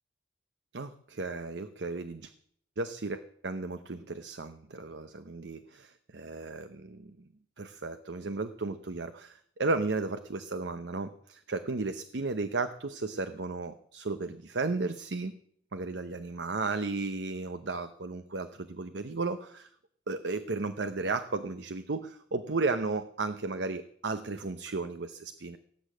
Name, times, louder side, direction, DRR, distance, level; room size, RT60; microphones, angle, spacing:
voice 1, 0.7-2.3 2.8-7.2 7.6-15.3 15.7-19.7 20.1-25.6, right 3 dB, 80° right, 9 dB, 0.8 m, -34 dB
18.5 x 8.5 x 7.7 m, 0.64 s
head